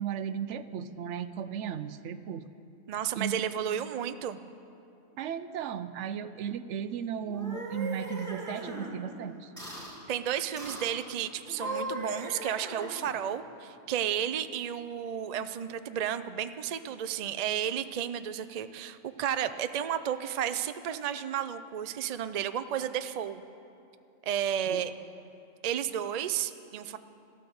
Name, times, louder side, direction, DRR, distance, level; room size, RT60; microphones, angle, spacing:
voice 1, 0.0-2.4 3.1-3.4 5.2-9.5 24.7-24.8, right 8 dB, 75° right, 12 dB, 0.9 m, -35 dB
voice 2, 2.9-4.4 10.1-23.4 24.3-24.9 25.6-27.0, right 9 dB, 55° right, 11 dB, 0.4 m, -32 dB
sound 1, 7.2-8.9 9.6-10.0 10.6-11.0 11.4-13.2, right 1 dB, 15° right, 2.7 m, -38 dB
14.0 x 13.0 x 7.0 m, 2.7 s
omnidirectional pair, 1.3 m